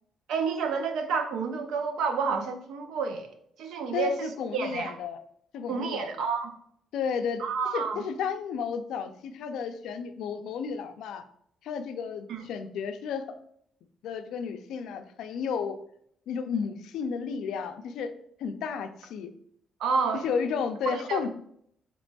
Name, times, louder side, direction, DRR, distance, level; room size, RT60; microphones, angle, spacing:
voice 1, 0.3-3.3 3.6-4.9 5.7-6.5 7.4-8.0 12.3-12.4 19.8-20.3 20.9-21.3, right 5 dB, 75° right, 6 dB, 0.5 m, -29 dB
voice 2, 3.9-5.2 5.5-6.1 6.9-7.4 7.7-11.2 11.6-13.2 14.0-15.8 16.3-18.1 18.4-19.3 20.2-21.3, left 6 dB, 80° left, 9 dB, 0.4 m, -32 dB
5.1 x 3.0 x 2.3 m, 0.68 s
cardioid pair, 160°, 0 cm